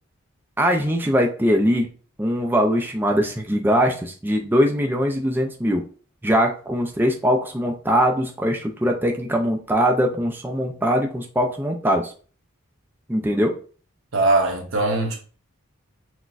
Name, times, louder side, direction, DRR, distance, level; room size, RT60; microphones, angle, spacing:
voice 1, 0.6-1.9 2.2-5.8 6.2-12.1 13.1-13.5, equal, 10° right, 0.4 m, -21 dB
voice 2, 14.1-15.2, right 2 dB, 70° right, 1.0 m, -20 dB
6.0 x 2.2 x 2.5 m
head